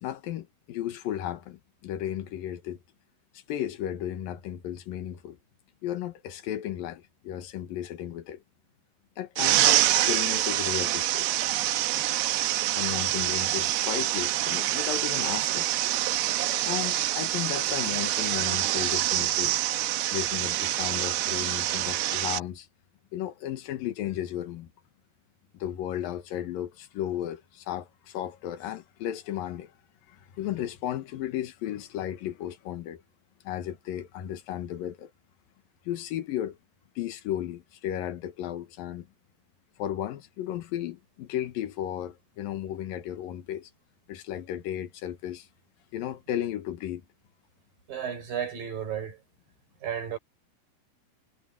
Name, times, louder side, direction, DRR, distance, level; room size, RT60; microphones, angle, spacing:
voice 1, 0.0-2.8 3.5-5.4 5.8-8.4 9.2-11.3 12.7-15.7 16.6-19.6 20.1-22.7 23.1-24.7 25.5-29.7 30.1-33.0 33.4-35.1 35.9-36.6 37.0-39.1 39.8-43.7 44.1-45.5 45.9-47.0, left 11 dB, 70° left, 3.0 m, -34 dB
sound 1, 9.4-22.4, right 14 dB, 80° right, 2.9 m, -26 dB
voice 2, 47.9-49.2 49.8-50.2, right 8 dB, 60° right, 7.7 m, -33 dB
omnidirectional pair, 4.6 m